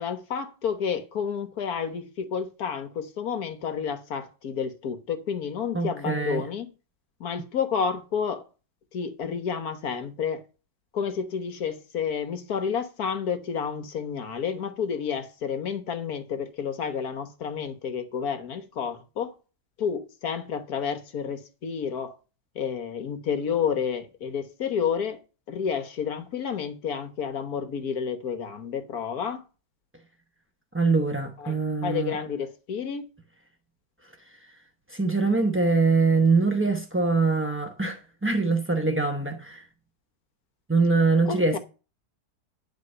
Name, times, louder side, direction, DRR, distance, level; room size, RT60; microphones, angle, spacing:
voice 1, 0.0-6.7 7.2-8.4 8.9-10.4 10.9-19.3 19.8-22.2 22.5-25.2 25.5-29.4 31.4-31.5 31.8-33.1 41.3-41.6, left 7 dB, 65° left, 1.5 m, -30 dB
voice 2, 5.7-6.4 30.7-32.2 34.3-34.4 34.9-39.6 40.7-41.6, right 4 dB, 20° right, 0.3 m, -23 dB
9.6 x 4.7 x 7.8 m
omnidirectional pair, 1.8 m